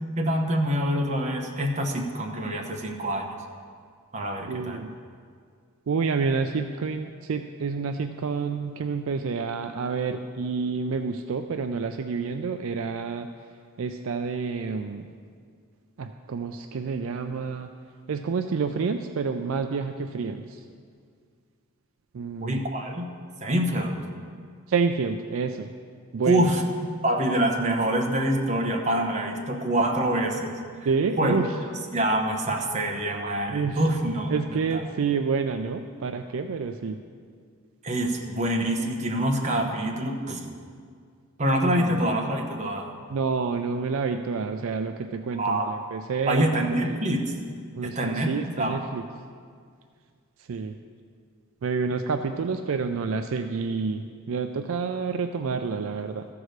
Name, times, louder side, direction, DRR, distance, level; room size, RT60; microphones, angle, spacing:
voice 1, 0.2-3.3 4.1-4.8 22.4-23.1 23.4-24.0 26.3-26.6 27.0-30.6 31.2-31.4 31.9-34.4 34.7-34.8 37.8-40.5 41.4-42.9 45.4-45.7 46.3-47.2 47.8-48.8, right 1 dB, 35° right, 2 dB, 1.0 m, -25 dB
voice 2, 4.5-5.0 5.9-13.3 13.8-15.1 16.0-17.7 18.1-20.6 22.1-22.6 24.7-25.7 26.1-26.5 30.9-31.5 33.5-33.8 34.3-37.0 41.8-42.0 43.1-46.4 46.8-47.0 47.8-49.0 50.4-50.8 51.6-56.3, right 5 dB, 65° right, 7 dB, 0.4 m, -28 dB
14.0 x 4.8 x 6.5 m, 2.1 s
head